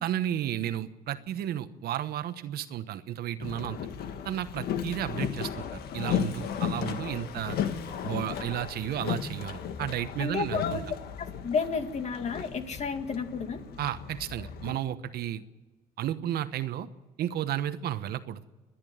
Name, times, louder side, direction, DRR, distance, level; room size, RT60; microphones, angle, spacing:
voice 1, 0.0-3.9 4.2-7.6 8.0-10.8 13.8-15.4 16.0-16.9 17.2-18.4, right 11 dB, 70° right, 12 dB, 1.1 m, -33 dB
Boat Water vehicle, 3.4-14.8, left 8 dB, 70° left, 1.7 m, -35 dB
voice 2, 10.2-10.8 11.2-13.6, left 5 dB, 40° left, 6 dB, 2.3 m, -32 dB
29.0 x 11.0 x 9.3 m, 1.2 s
cardioid pair, 110°, 17 cm